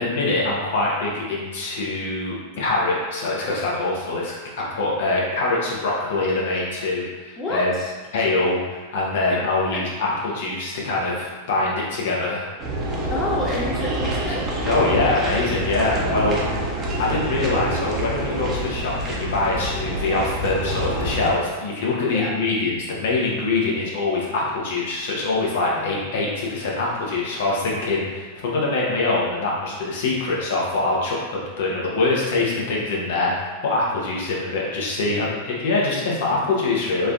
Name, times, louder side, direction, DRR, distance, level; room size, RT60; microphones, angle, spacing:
voice 1, 0.0-7.7 8.1-12.5 14.6-16.4 17.0-37.1, left 3 dB, 70° left, -4 dB, 0.8 m, -24 dB
voice 2, 7.4-7.9 9.7-9.8 13.1-14.5 17.1-17.7 22.1-22.4 25.7-26.0 31.7-31.8, left 1 dB, 25° left, -4 dB, 0.5 m, -29 dB
sound 1, 12.6-21.3, right 1 dB, 30° right, 0.7 m, -26 dB
3.1 x 2.5 x 2.3 m, 1.3 s
hypercardioid pair, 100°, 0 cm